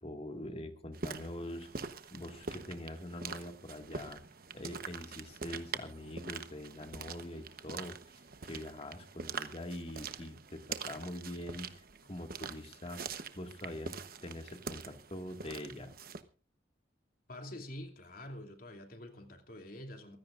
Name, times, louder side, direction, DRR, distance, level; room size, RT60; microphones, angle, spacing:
voice 1, 0.0-4.2 4.5-13.0 13.3-15.9, left 1 dB, 35° left, 2.0 m, -44 dB
sound 1, 0.9-16.2, right 5 dB, 55° right, 1.1 m, -44 dB
voice 2, 17.3-20.2, left 1 dB, 55° left, 2.8 m, -46 dB
23.5 x 16.0 x 2.6 m
head